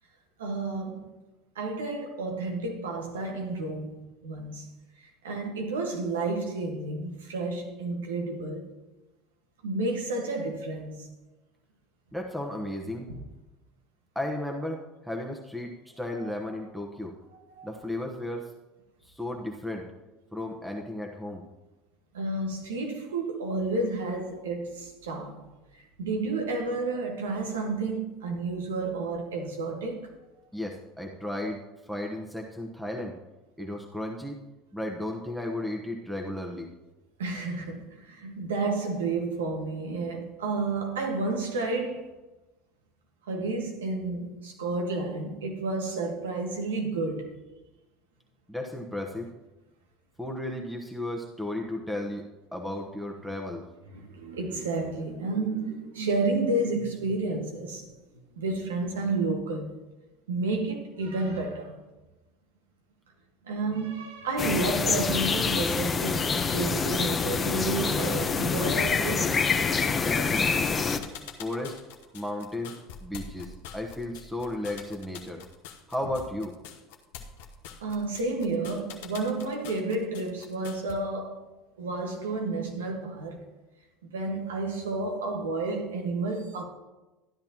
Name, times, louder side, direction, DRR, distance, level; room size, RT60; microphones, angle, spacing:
voice 1, 0.4-1.1 1.5-4.7 5.0-8.7 9.6-11.1 13.1-13.2 16.2-16.4 17.3-17.7 22.1-25.4 25.7-30.1 37.2-42.1 43.3-47.4 53.9-57.9 58.4-59.7 60.3-61.8 63.4-69.4 77.8-81.4 81.8-83.4 84.0-86.6, right 3 dB, 85° right, 1.5 m, -31 dB
voice 2, 12.1-13.1 14.1-17.2 17.6-18.5 19.0-19.9 20.3-21.4 30.5-33.2 33.6-34.4 34.7-36.7 48.5-49.3 50.2-53.7 69.9-70.7 71.4-71.8 72.1-75.4 75.9-76.5, left 1 dB, ahead, 1.1 m, -34 dB
sound 1, 64.4-71.0, left 5 dB, 30° left, 0.9 m, -26 dB
sound 2, 70.6-80.9, left 7 dB, 75° left, 1.0 m, -45 dB
13.0 x 10.5 x 2.9 m
hypercardioid pair, 80°, 0 cm